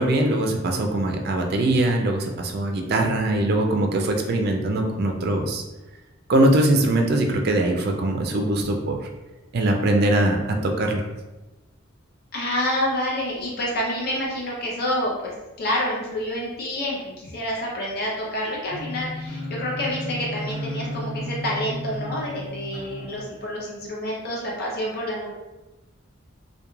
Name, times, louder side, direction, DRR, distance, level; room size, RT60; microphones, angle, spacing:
voice 1, 0.0-5.6 6.3-9.0 9.5-11.0, right 1 dB, 50° right, 3 dB, 0.3 m, -22 dB
voice 2, 12.3-15.3 15.6-25.3, left 1 dB, 50° left, -4 dB, 0.6 m, -28 dB
sound 1, 18.7-23.2, left 1 dB, 15° right, 0.8 m, -33 dB
2.3 x 2.2 x 3.0 m, 1.0 s
head